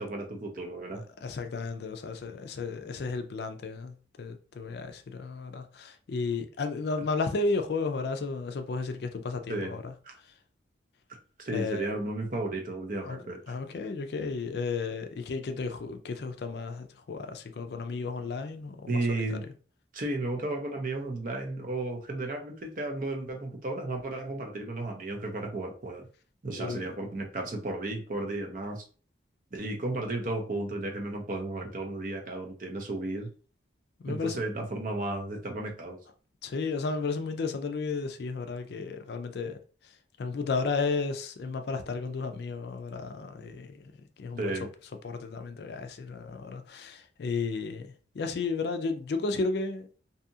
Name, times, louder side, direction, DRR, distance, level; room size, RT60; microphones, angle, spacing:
voice 1, 0.0-1.0 9.5-9.7 10.0-10.1 11.4-13.4 18.9-19.4 19.9-26.1 26.4-28.8 29.5-33.3 34.1-36.0 44.4-44.7, right 2 dB, 45° right, 0.6 m, -33 dB
voice 2, 0.9-9.9 10.2-10.3 11.5-11.9 13.0-13.2 13.5-19.4 26.6-26.9 34.0-34.4 36.4-39.6 39.8-39.9 40.2-43.9 44.2-44.5 45.0-50.0, left 4 dB, 60° left, 0.4 m, -33 dB
2.7 x 2.4 x 2.7 m
head